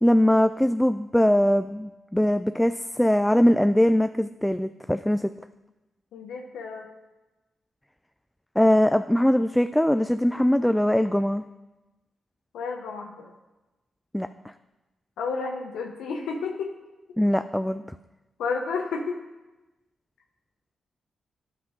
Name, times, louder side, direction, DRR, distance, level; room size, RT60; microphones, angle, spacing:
voice 1, 0.0-5.3 8.6-11.4 14.1-14.3 17.2-17.8, equal, 5° left, 9 dB, 0.3 m, -21 dB
voice 2, 6.1-6.9 12.5-13.3 15.2-16.7 18.4-19.2, left 4 dB, 85° left, 2 dB, 0.7 m, -31 dB
10.0 x 5.8 x 3.9 m, 1.1 s
supercardioid pair, 50°, 0 cm